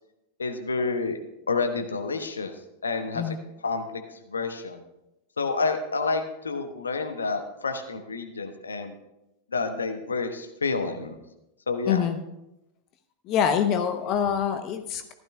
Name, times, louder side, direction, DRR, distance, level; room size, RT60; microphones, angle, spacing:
voice 1, 0.4-1.2 1.5-2.5 2.8-3.4 3.6-4.8 5.4-8.9 9.5-11.2 11.7-12.0, left 4 dB, 75° left, 7 dB, 1.0 m, -29 dB
voice 2, 11.9-12.2 13.3-15.1, left 8 dB, 35° left, 8 dB, 0.8 m, -25 dB
15.0 x 12.0 x 2.3 m, 0.90 s
figure-of-eight pair, 90°, 0 cm